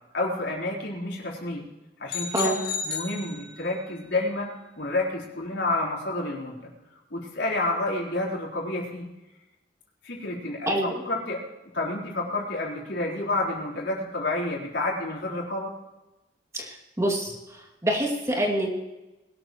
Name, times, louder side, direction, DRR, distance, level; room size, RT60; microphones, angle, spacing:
voice 1, 0.1-1.7 2.0-2.5 2.8-6.6 7.1-9.1 10.0-11.4 11.7-15.7, left 2 dB, 80° left, -3 dB, 4.2 m, -29 dB
sound 1, 2.1-3.9, left 6 dB, 65° left, 2.4 m, -33 dB
voice 2, 16.5-17.4 17.8-18.7, right 1 dB, 15° right, 0 dB, 2.4 m, -26 dB
21.0 x 13.0 x 3.1 m, 1.0 s
head